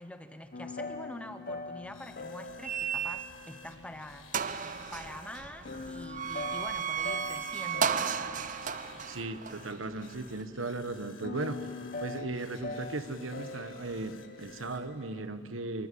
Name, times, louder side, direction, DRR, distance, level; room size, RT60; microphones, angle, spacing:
voice 1, 0.0-8.2, left 1 dB, 5° left, 8 dB, 1.1 m, -45 dB
sound 1, 0.5-4.6 5.6-10.0 11.0-15.2, left 3 dB, 45° left, 1.0 m, -43 dB
sound 2, 1.8-14.9, left 5 dB, 85° left, 1.5 m, -55 dB
sound 3, 2.6-3.6 4.0-4.1 4.3-10.4, right 7 dB, 40° right, 0.6 m, -34 dB
voice 2, 9.1-11.7 12.0-15.9, right 2 dB, 85° right, 10 dB, 1.2 m, -37 dB
24.5 x 23.0 x 8.4 m, 2.5 s
head